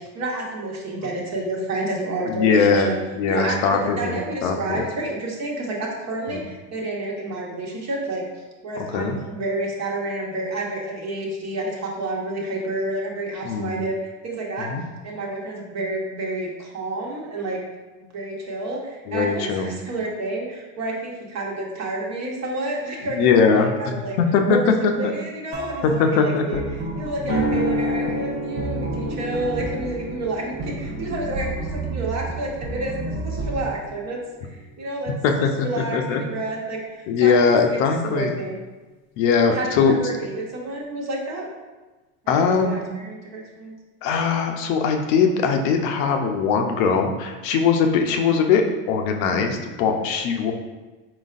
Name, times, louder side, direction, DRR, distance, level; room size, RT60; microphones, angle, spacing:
voice 1, 0.1-3.0 3.3-8.2 8.6-14.7 15.0-17.6 18.0-24.2 24.5-26.6 26.9-35.1 35.4-37.8 38.0-38.6 39.5-41.5 42.2-43.8, right 2 dB, 40° right, -1 dB, 1.1 m, -29 dB
voice 2, 2.2-4.9 6.3-6.4 8.9-9.2 13.4-13.8 14.7-14.8 19.1-19.7 23.1-25.1 25.8-26.6 35.2-35.5 35.9-36.2 37.1-38.4 39.2-39.9 42.3-42.8 44.0-50.5, left 5 dB, 65° left, 4 dB, 0.7 m, -21 dB
sound 1, 25.5-33.7, right 2 dB, 25° right, 0.7 m, -32 dB
sound 2, 27.2-35.3, equal, 30° left, 0.9 m, -31 dB
4.5 x 4.0 x 2.5 m, 1.2 s
supercardioid pair, 115°, 41 cm